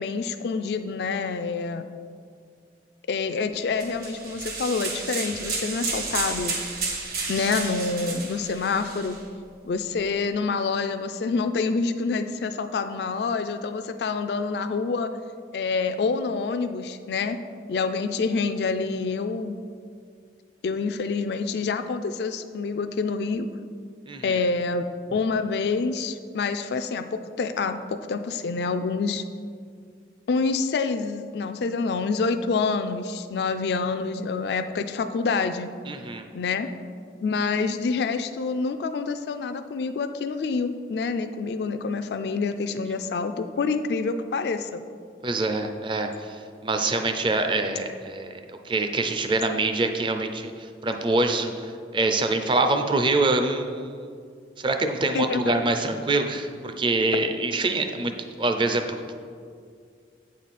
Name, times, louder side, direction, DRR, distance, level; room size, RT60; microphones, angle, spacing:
voice 1, 0.0-1.9 3.1-6.6 7.3-9.1 9.6-15.1 15.5-17.4 17.7-19.6 20.6-23.5 24.2-24.8 25.1-27.0 27.4-29.2 30.3-35.7 36.3-36.7 37.2-44.8 55.1-55.6, left 4 dB, 65° left, 8 dB, 0.3 m, -27 dB
sound 1, 3.8-9.2, right 4 dB, 55° right, 1.2 m, -32 dB
voice 2, 24.1-24.4 35.9-36.3 45.2-54.0 54.6-58.1 58.4-59.2, right 2 dB, 30° right, 6 dB, 0.5 m, -25 dB
8.4 x 6.3 x 4.2 m, 2.2 s
head